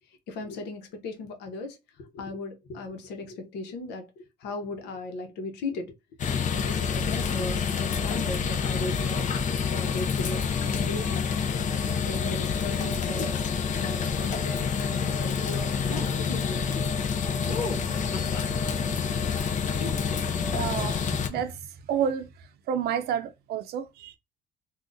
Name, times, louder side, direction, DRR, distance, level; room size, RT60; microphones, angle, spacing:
voice 1, 0.3-5.9 6.5-9.3 9.7-11.3 12.0-17.0, left 3 dB, 85° left, 1.0 m, -37 dB
sound 1, 6.2-21.3, left 6 dB, 45° left, 0.7 m, -28 dB
sound 2, 15.9-16.1 17.5-18.7 19.4-20.4 20.9-21.4, left 2 dB, 65° left, 1.3 m, -37 dB
voice 2, 20.5-21.0 21.3-21.6 21.9-22.3 22.7-24.2, right 8 dB, 70° right, 0.6 m, -29 dB
3.6 x 2.4 x 2.6 m
cardioid pair, 110°, 17 cm